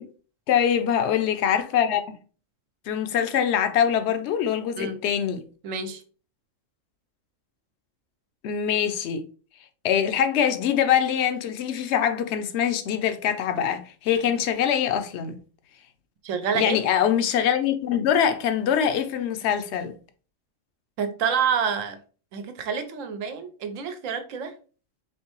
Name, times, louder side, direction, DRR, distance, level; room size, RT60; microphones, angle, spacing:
voice 1, 0.5-2.0 2.9-5.4 8.4-9.2 9.8-15.4 16.5-20.0, left 9 dB, 65° left, 0.8 m, -23 dB
voice 2, 5.6-6.0 14.2-14.3 16.2-16.8 21.0-22.0 22.3-24.5, right 6 dB, 75° right, 1.0 m, -28 dB
4.5 x 3.1 x 3.0 m
omnidirectional pair, 1.4 m